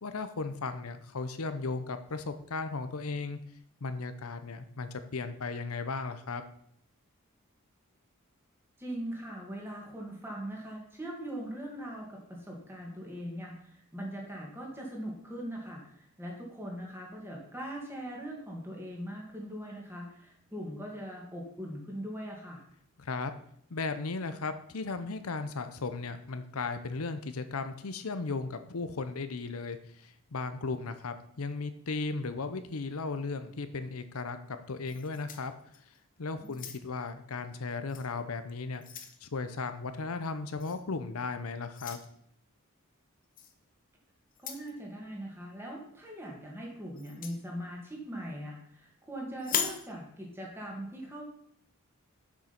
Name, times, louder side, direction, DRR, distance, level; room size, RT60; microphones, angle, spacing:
voice 1, 0.0-3.4 3.8-6.4 23.0-23.3 23.7-35.5 36.2-38.8 39.2-42.0, left 4 dB, 85° left, 10 dB, 0.7 m, -36 dB
voice 2, 8.8-22.6 36.4-36.5 44.4-51.2, equal, 10° right, -2 dB, 2.2 m, -41 dB
sound 1, 34.9-36.0 36.4-37.1 37.9-38.1 38.5-39.2 40.6-40.8 41.7-42.1 43.4-43.5 44.3-44.7 47.0-47.4 49.4-49.9, left 8 dB, 40° left, 0.9 m, -38 dB
7.3 x 6.4 x 5.9 m, 0.67 s
head